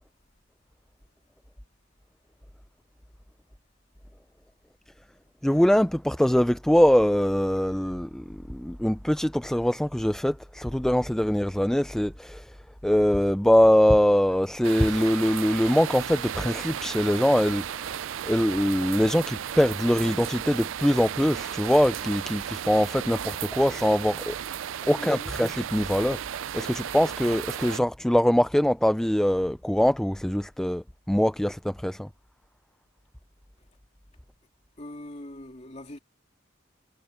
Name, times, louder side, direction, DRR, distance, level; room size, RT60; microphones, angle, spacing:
voice 1, 5.4-8.2 8.5-12.5 12.8-17.9 18.2-24.4 24.9-26.2 26.5-32.1, equal, 5° left, 0.4 m, -23 dB
sound 1, 14.6-27.8, right 9 dB, 85° right, 0.4 m, -34 dB
voice 2, 24.8-25.3 34.8-36.0, left 1 dB, 35° left, 2.7 m, -42 dB
head